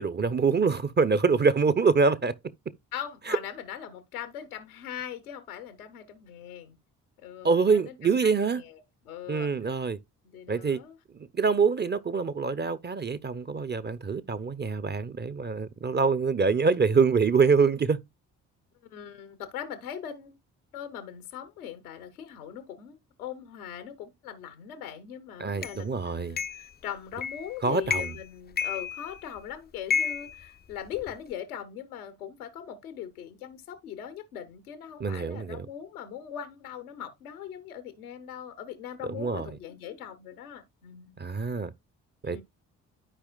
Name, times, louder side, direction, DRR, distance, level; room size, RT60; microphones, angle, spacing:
voice 1, 0.0-2.3 3.3-3.4 7.4-8.6 9.3-10.0 10.5-10.8 11.3-18.0 25.4-26.4 27.6-28.1 35.0-35.7 39.0-39.5 41.2-41.7 42.2-42.4, right 5 dB, 25° right, 0.7 m, -25 dB
voice 2, 2.9-6.8 7.2-9.5 10.2-11.0 18.9-20.3 20.7-41.2 42.2-42.4, left 9 dB, 85° left, 1.0 m, -40 dB
sound 1, 25.6-25.8 26.4-26.7 27.2-27.5 27.8-28.3 28.6-29.4 29.9-31.1, left 7 dB, 25° left, 0.5 m, -31 dB
12.5 x 4.9 x 2.3 m
hypercardioid pair, 40°, 43 cm